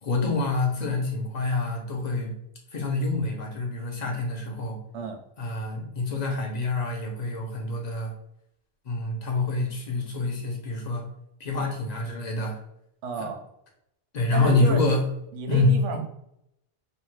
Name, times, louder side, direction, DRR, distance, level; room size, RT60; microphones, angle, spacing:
voice 1, 0.0-2.4 2.7-4.8 5.4-8.1 8.9-11.1 11.4-12.6 13.2-13.3 14.1-15.0 15.5-16.0, left 2 dB, 55° left, 1 dB, 0.5 m, -26 dB
voice 2, 13.0-13.4 14.3-14.9 15.3-16.0, right 5 dB, 80° right, 5 dB, 0.9 m, -32 dB
2.7 x 2.1 x 3.0 m, 0.77 s
omnidirectional pair, 1.2 m